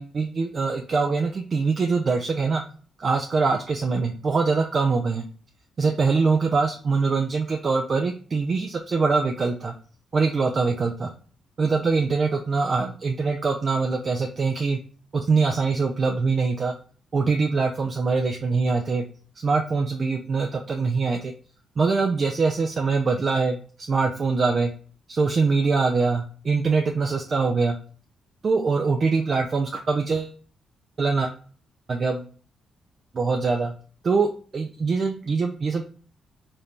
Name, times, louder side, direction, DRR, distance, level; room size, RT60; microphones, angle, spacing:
voice 1, 0.0-2.6 3.0-5.2 5.8-9.7 10.1-11.1 11.6-14.8 15.1-16.7 17.1-19.0 19.4-21.3 21.8-23.6 23.9-24.7 25.1-27.8 28.4-30.3 31.0-31.3 31.9-32.3 33.1-33.7 34.0-35.8, right 4 dB, 50° right, 3 dB, 0.4 m, -23 dB
2.7 x 2.5 x 3.5 m, 0.40 s
hypercardioid pair, 45°, 0 cm